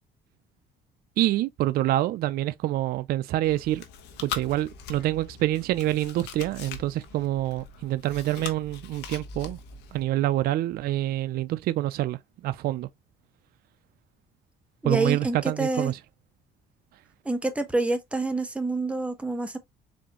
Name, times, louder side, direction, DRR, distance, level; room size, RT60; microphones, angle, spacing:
voice 1, 1.2-3.8 4.2-9.6 9.9-12.2 12.4-12.9 14.8-16.0, right 14 dB, 65° right, 0.4 m, -26 dB
Chewing mastication, 3.4-10.0, left 6 dB, 90° left, 0.9 m, -41 dB
voice 2, 14.8-15.9 17.2-19.6, right 2 dB, 5° right, 0.9 m, -27 dB
4.3 x 3.3 x 2.9 m
cardioid pair, 110°, 17 cm